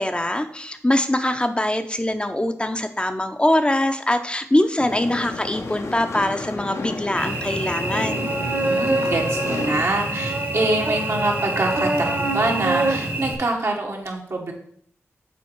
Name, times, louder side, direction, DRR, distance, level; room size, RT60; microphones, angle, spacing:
voice 1, 0.0-8.3, left 1 dB, 20° left, 7 dB, 0.6 m, -23 dB
sound 1, 4.8-9.9, left 3 dB, 70° left, 0.8 m, -32 dB
Cricket / Buzz, 7.2-13.4, right 2 dB, 45° right, 1.2 m, -25 dB
voice 2, 8.7-14.5, right 2 dB, 65° right, 0 dB, 1.6 m, -25 dB
7.1 x 4.1 x 4.6 m, 0.67 s
cardioid pair, 45°, 5 cm